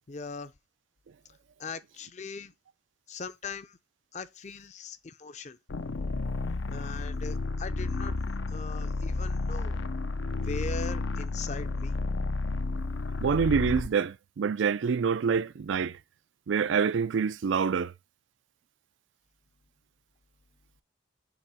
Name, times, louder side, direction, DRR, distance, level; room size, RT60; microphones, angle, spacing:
voice 1, 0.1-0.5 1.6-2.5 3.1-3.8 4.1-5.6 6.7-9.8 10.4-12.0, left 4 dB, 35° left, 0.5 m, -40 dB
sound 1, 5.7-13.9, left 3 dB, 80° left, 0.6 m, -31 dB
voice 2, 13.2-15.9 16.5-17.9, right 6 dB, 75° right, 0.4 m, -26 dB
7.0 x 3.0 x 4.9 m
head